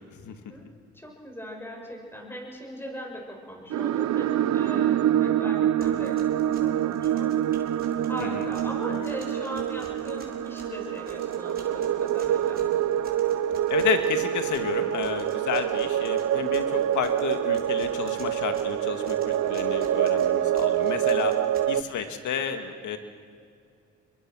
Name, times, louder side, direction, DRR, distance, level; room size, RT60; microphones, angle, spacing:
voice 1, 0.9-6.2 6.6-7.5 8.1-12.6 21.0-21.4, equal, 5° left, 0 dB, 6.7 m, -39 dB
sound 1, 3.7-21.8, right 11 dB, 65° right, 0.8 m, -26 dB
sound 2, 5.8-21.8, right 3 dB, 30° right, 4.8 m, -49 dB
voice 2, 13.7-21.4 21.7-23.0, left 7 dB, 75° left, 7 dB, 2.2 m, -31 dB
28.0 x 22.5 x 6.4 m, 2.3 s
cardioid pair, 90°, 30 cm